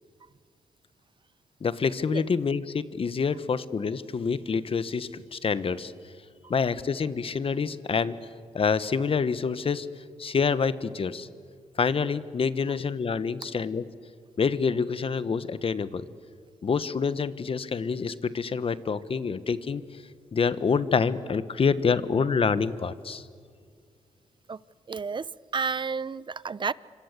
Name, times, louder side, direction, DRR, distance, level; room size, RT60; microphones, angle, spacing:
voice 1, 1.6-5.9 6.5-8.1 8.5-9.9 10.2-11.3 11.8-13.9 14.4-16.0 16.6-19.8 20.3-23.2, left 5 dB, 50° left, 1.4 m, -27 dB
voice 2, 24.9-26.7, right 5 dB, 40° right, 0.8 m, -31 dB
27.0 x 26.0 x 8.3 m
cardioid pair, 60°, 12 cm